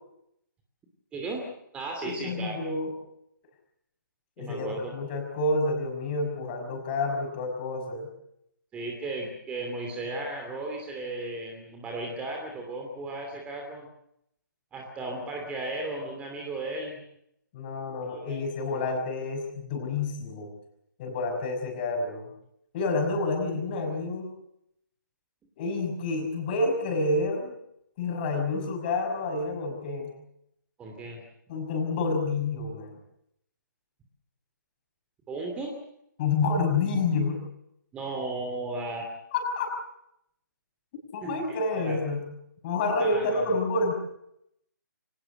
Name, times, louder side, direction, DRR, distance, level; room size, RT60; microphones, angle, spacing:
voice 1, 1.1-1.4 1.7-2.6 4.4-4.9 8.7-13.9 14.7-17.0 18.0-18.4 18.7-19.0 30.8-31.2 35.3-35.7 37.9-39.1 41.2-41.4 41.8-42.0 43.0-43.4, right 2 dB, 10° right, 2 dB, 2.7 m, -35 dB
voice 2, 2.0-2.9 4.4-8.1 17.5-20.5 21.0-22.3 22.7-24.3 25.6-27.5 28.0-30.1 31.5-32.9 36.2-37.4 39.3-39.7 41.1-42.2 42.6-43.9, left 3 dB, 30° left, 3 dB, 5.9 m, -28 dB
24.0 x 18.5 x 8.0 m, 0.77 s
figure-of-eight pair, 145°, 11 cm